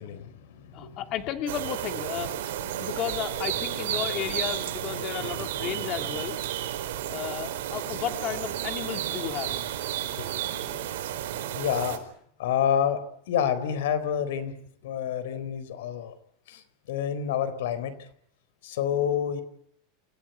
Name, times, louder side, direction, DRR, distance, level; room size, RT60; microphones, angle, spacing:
voice 1, 0.0-1.0 10.2-10.3 11.5-12.0 12.4-13.0 13.3-14.5 14.8-16.1 16.5-16.6 16.9-17.9 18.6-19.4, left 9 dB, 75° left, 14 dB, 4.2 m, -28 dB
voice 2, 0.7-6.4 7.1-9.6, left 11 dB, 35° left, 6 dB, 2.3 m, -33 dB
sound 1, 1.5-12.0, right 11 dB, 85° right, 4.8 m, -32 dB
28.5 x 16.5 x 9.4 m, 0.70 s
supercardioid pair, 175°, 0 cm